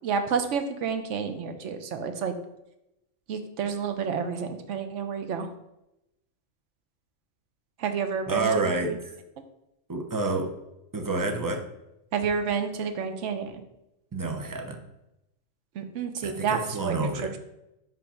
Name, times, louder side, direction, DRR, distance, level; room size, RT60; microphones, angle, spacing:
voice 1, 0.0-2.3 3.3-5.5 7.8-8.7 12.1-13.6 15.8-17.3, right 6 dB, 75° right, 7 dB, 1.1 m, -29 dB
voice 2, 8.3-9.1 9.9-10.5 10.9-11.7 14.1-14.8 16.2-17.3, right 3 dB, 20° right, 2 dB, 0.6 m, -29 dB
5.2 x 3.7 x 5.7 m, 0.88 s
omnidirectional pair, 1.3 m